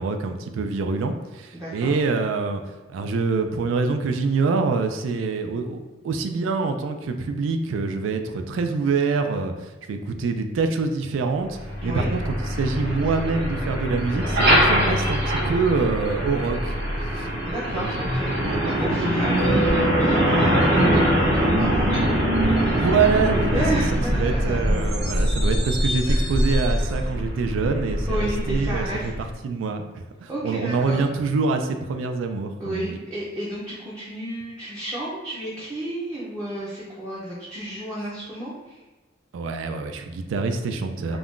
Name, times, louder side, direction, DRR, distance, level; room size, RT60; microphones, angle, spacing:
voice 1, 0.0-2.6 2.9-5.8 6.0-16.8 17.1-17.3 17.7-19.1 22.5-23.6 23.9-29.1 29.4-29.8 30.2-33.0 39.3-41.2, right 4 dB, 85° right, 6 dB, 0.3 m, -25 dB
voice 2, 1.5-1.9 11.8-12.1 17.4-22.0 22.5-22.9 23.5-24.6 26.1-26.3 28.1-29.1 30.3-31.0 32.6-38.8 41.1-41.2, right 1 dB, 20° right, -8 dB, 0.5 m, -32 dB
Truck, 11.5-29.2, equal, 55° right, 0.8 m, -23 dB
Mallet percussion, 19.4-22.8, right 1 dB, 55° left, 0.5 m, -31 dB
2.5 x 2.2 x 3.6 m, 1.2 s
head